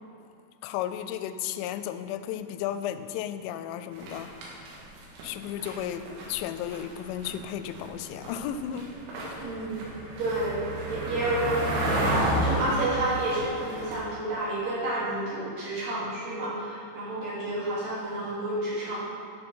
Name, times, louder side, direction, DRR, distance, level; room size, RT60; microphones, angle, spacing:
voice 1, 0.6-4.3 5.2-8.9 9.2-9.4, left 10 dB, 85° left, 11 dB, 2.8 m, -34 dB
sound 1, 4.0-6.4 6.7-14.0, right 1 dB, 75° right, 4.0 m, -31 dB
voice 2, 9.4-9.8 10.2-19.0, right 2 dB, 50° right, -8 dB, 4.2 m, -30 dB
12.5 x 6.8 x 5.5 m, 2.5 s
omnidirectional pair, 5.4 m